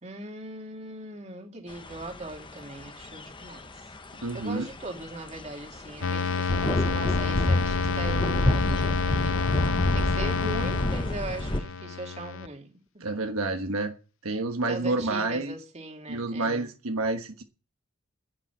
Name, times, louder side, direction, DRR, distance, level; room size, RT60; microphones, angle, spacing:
voice 1, 0.0-3.7 4.3-9.4 9.9-12.7 12.9-13.0 14.6-16.7, right 2 dB, 30° right, 2.3 m, -39 dB
sound 1, 1.7-11.6, left 1 dB, 20° left, 0.8 m, -30 dB
voice 2, 4.2-4.7 13.0-13.9 14.2-15.5 16.1-17.4, right 2 dB, 75° right, 1.3 m, -29 dB
sound 2, 6.0-12.5, left 5 dB, 60° left, 0.6 m, -29 dB
10.5 x 9.0 x 9.4 m
head